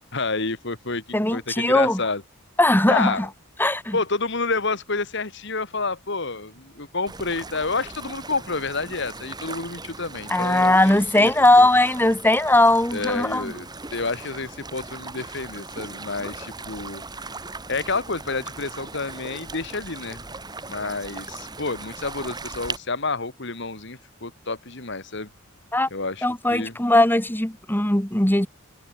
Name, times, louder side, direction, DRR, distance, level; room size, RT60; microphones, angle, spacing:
voice 1, 0.1-2.2 2.9-3.3 3.9-11.3 11.6-11.7 12.9-13.7 13.9-17.0 17.7-20.2 20.7-25.3 25.9-26.8, left 3 dB, 60° left, 2.6 m, -29 dB
voice 2, 1.1-2.0 2.6-3.3 3.6-4.0 10.3-13.5 25.7-25.9 26.2-28.5, left 1 dB, 10° left, 1.8 m, -19 dB
sound 1, 7.1-22.8, right 3 dB, 20° right, 3.5 m, -38 dB
head